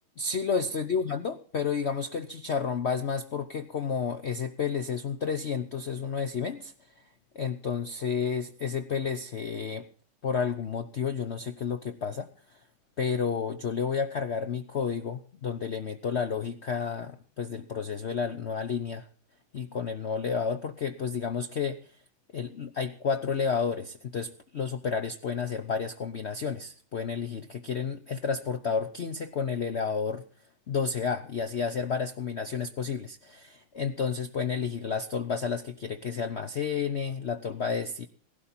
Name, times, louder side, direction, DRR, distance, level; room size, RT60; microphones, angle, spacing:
voice 1, 0.2-6.7 7.3-9.9 10.2-12.3 13.0-19.1 19.5-21.8 22.3-30.2 30.7-38.1, left 6 dB, 70° left, 9 dB, 0.6 m, -31 dB
17.5 x 12.0 x 4.3 m, 0.42 s
omnidirectional pair, 2.2 m